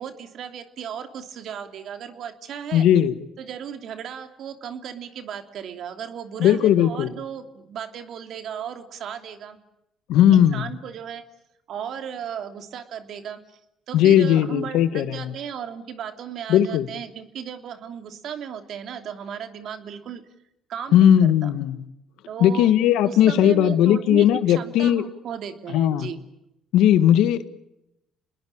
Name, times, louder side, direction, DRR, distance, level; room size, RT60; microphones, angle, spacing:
voice 1, 0.0-2.9 3.4-9.6 10.3-11.2 11.7-13.4 13.9-20.2 20.7-21.5 22.3-22.7 23.0-26.2, right 8 dB, 65° right, 7 dB, 3.0 m, -35 dB
voice 2, 2.7-3.1 6.4-7.1 10.1-10.6 13.9-15.3 16.5-16.9 20.9-21.8 22.4-25.0 25.7-26.1 26.7-27.5, left 10 dB, 75° left, 12 dB, 1.8 m, -17 dB
28.0 x 21.0 x 8.9 m, 0.84 s
supercardioid pair, 80°, 0 cm